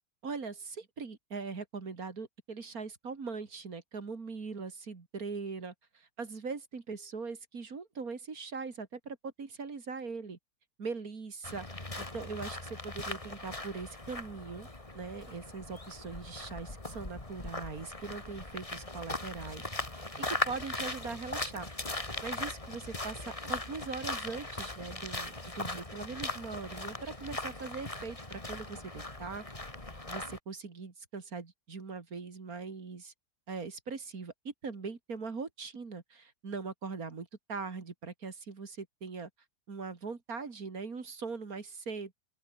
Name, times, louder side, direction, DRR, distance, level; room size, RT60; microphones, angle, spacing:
voice 1, 0.2-10.4 10.8-14.7 14.9-19.6 19.9-21.7 22.2-29.4 30.1-33.1 33.5-39.3 39.7-42.1, right 4 dB, 60° right, 2.9 m, -41 dB
sound 1, 11.4-30.4, left 2 dB, 20° left, 2.8 m, -39 dB
open air
omnidirectional pair, 1.8 m